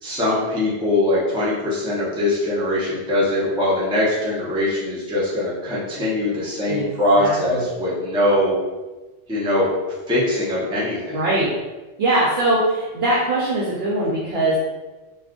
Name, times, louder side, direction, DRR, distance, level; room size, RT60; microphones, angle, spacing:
voice 1, 0.0-8.6 9.3-9.7 10.1-11.2, left 1 dB, 5° right, -8 dB, 0.5 m, -21 dB
voice 2, 6.6-7.6 11.1-11.5 12.0-14.6, right 1 dB, 65° right, -6 dB, 0.8 m, -21 dB
2.4 x 2.3 x 3.5 m, 1.2 s
omnidirectional pair, 1.2 m